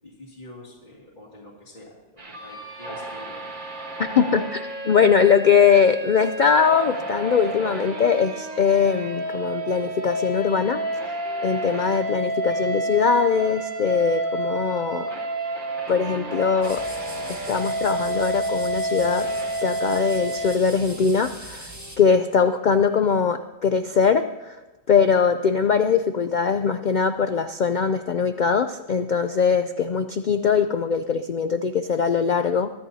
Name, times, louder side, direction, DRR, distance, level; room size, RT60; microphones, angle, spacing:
voice 1, 0.0-3.5, left 1 dB, 35° left, -7 dB, 2.5 m, -46 dB
sound 1, 2.2-20.6, right 1 dB, 40° right, 1.6 m, -30 dB
voice 2, 4.0-10.8 11.4-15.1 15.9-16.8 17.3-19.3 19.6-24.6 24.9-32.7, left 6 dB, 70° left, 9 dB, 0.4 m, -21 dB
sound 2, 7.2-12.7 13.0-23.2, left 1 dB, 50° left, 2.3 m, -48 dB
sound 3, 16.6-22.0, right 1 dB, 15° right, 1.6 m, -41 dB
22.5 x 13.0 x 2.8 m, 1.1 s
omnidirectional pair, 1.4 m